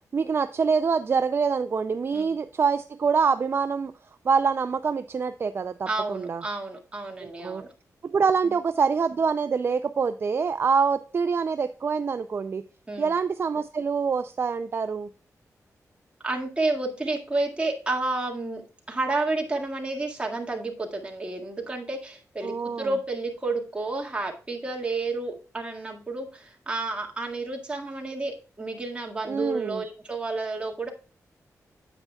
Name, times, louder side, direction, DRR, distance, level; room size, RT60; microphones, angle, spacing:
voice 1, 0.1-3.9 4.2-6.4 7.2-7.6 8.0-12.6 13.0-15.1 22.4-22.9 29.3-29.8, right 5 dB, 40° right, 10 dB, 0.4 m, -25 dB
voice 2, 5.9-7.7 8.4-8.5 12.9-13.1 16.2-18.6 18.9-30.9, right 2 dB, 20° right, 0 dB, 1.9 m, -30 dB
9.7 x 8.1 x 2.3 m, 0.36 s
wide cardioid pair, 135°, 6 cm